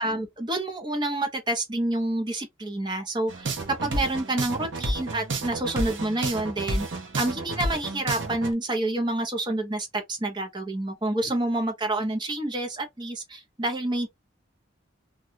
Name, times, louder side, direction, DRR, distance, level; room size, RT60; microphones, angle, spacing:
voice 1, 0.0-3.5 3.8-6.9 7.2-14.1, right 1 dB, 25° right, 0.7 m, -28 dB
sound 1, 3.3-8.5, right 2 dB, 70° right, 0.8 m, -30 dB
2.7 x 2.3 x 2.7 m
head